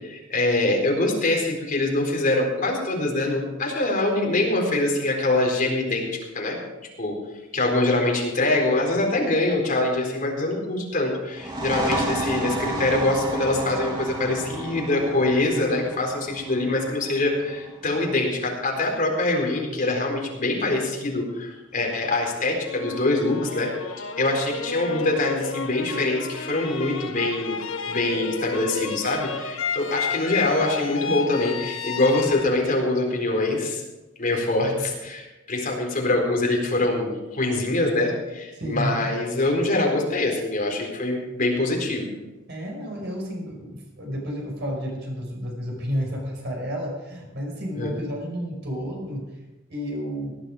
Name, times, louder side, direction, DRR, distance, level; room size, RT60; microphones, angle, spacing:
voice 1, 0.0-6.1 6.3-6.6 7.0-7.1 7.5-33.8 34.2-42.2 47.8-47.9, left 2 dB, 40° left, 0 dB, 4.3 m, -24 dB
sound 1, 11.3-18.7, right 1 dB, 25° right, 2.2 m, -31 dB
sound 2, 22.6-33.7, left 5 dB, 75° left, 1.1 m, -32 dB
voice 2, 38.5-39.0 42.5-49.3 49.7-50.4, equal, 60° right, 0 dB, 5.4 m, -31 dB
18.0 x 10.5 x 5.0 m, 1.0 s
head